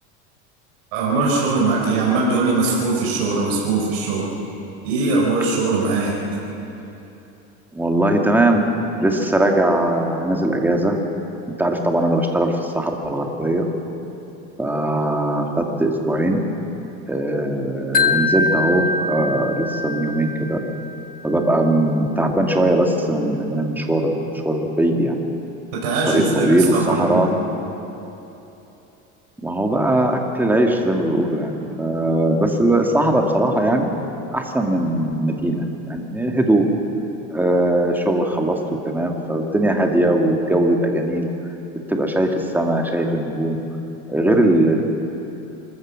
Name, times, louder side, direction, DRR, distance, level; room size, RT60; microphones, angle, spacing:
voice 1, 0.9-4.2 4.8-6.2 25.8-27.2, right 3 dB, 65° right, -3 dB, 4.6 m, -21 dB
voice 2, 7.7-8.6 9.0-11.0 11.6-13.6 14.6-15.5 15.8-16.4 17.1-20.6 21.2-25.1 26.1-27.3 29.4-33.9 34.3-36.7 37.3-38.6 38.9-41.3 41.9-43.6 44.1-44.8, right 1 dB, 5° right, 2 dB, 2.1 m, -20 dB
Wind chime, 17.9-21.1, left 3 dB, 25° left, 1.2 m, -23 dB
25.0 x 14.0 x 7.5 m, 3.0 s
supercardioid pair, 120°, 33 cm